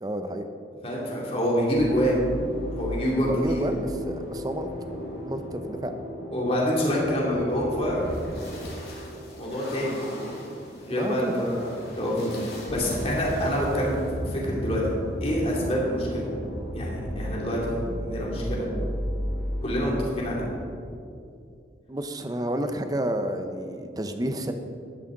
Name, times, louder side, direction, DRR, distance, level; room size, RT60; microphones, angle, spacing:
voice 1, 0.0-0.5 3.3-4.7 5.3-5.9 10.9-11.5 21.9-24.5, right 1 dB, 20° right, 7 dB, 0.6 m, -30 dB
voice 2, 0.8-2.2 2.7-3.7 6.3-8.1 9.4-10.0 10.8-14.0 14.3-14.8 15.2-16.3 16.7-18.7 19.6-20.4, equal, 35° left, -4 dB, 2.5 m, -26 dB
sound 1, 1.7-20.7, equal, 60° left, 2.6 m, -35 dB
12.5 x 11.0 x 3.8 m, 2.5 s
head